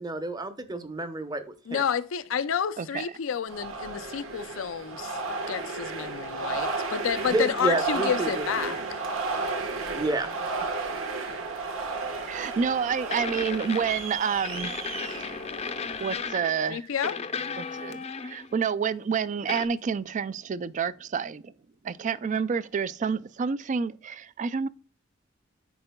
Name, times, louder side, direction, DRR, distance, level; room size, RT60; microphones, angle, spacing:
voice 1, 0.0-1.8 7.3-8.7 9.9-10.3, right 2 dB, 20° right, 0.7 m, -30 dB
voice 2, 1.7-5.2 5.5-9.0 16.7-17.1, left 7 dB, 80° left, 0.5 m, -30 dB
sound 1, 3.5-16.3, right 3 dB, 90° right, 1.2 m, -33 dB
sound 2, 12.2-12.3 13.1-14.2 14.4-16.7 17.0-18.6 19.5-19.7, left 5 dB, 30° left, 0.5 m, -35 dB
voice 3, 12.3-14.7 16.0-16.9 17.6-21.5 21.8-24.7, right 6 dB, 40° right, 0.3 m, -29 dB
10.5 x 4.4 x 2.2 m
head